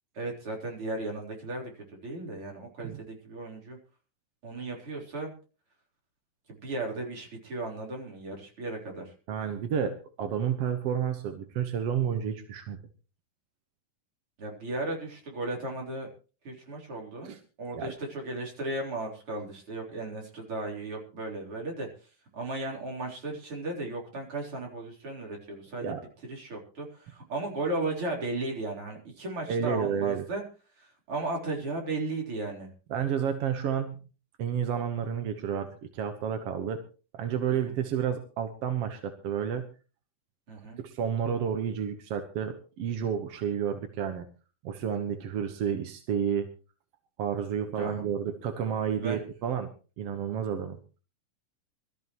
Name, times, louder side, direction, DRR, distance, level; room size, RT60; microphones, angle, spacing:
voice 1, 0.1-3.8 4.4-5.3 6.5-9.1 14.4-16.1 16.4-17.3 17.6-26.0 26.2-30.4 30.8-32.7 37.5-37.8 40.5-40.8 47.8-48.0 48.9-49.2, right 2 dB, 40° right, 0 dB, 4.6 m, -35 dB
voice 2, 9.3-12.8 17.2-17.4 17.7-17.9 25.8-26.0 29.5-30.3 32.9-34.0 34.4-36.8 37.1-39.7 40.8-44.3 44.6-46.5 47.2-49.7 50.0-50.8, right 8 dB, 60° right, 7 dB, 1.7 m, -30 dB
23.5 x 13.5 x 3.1 m, 0.35 s
omnidirectional pair, 4.0 m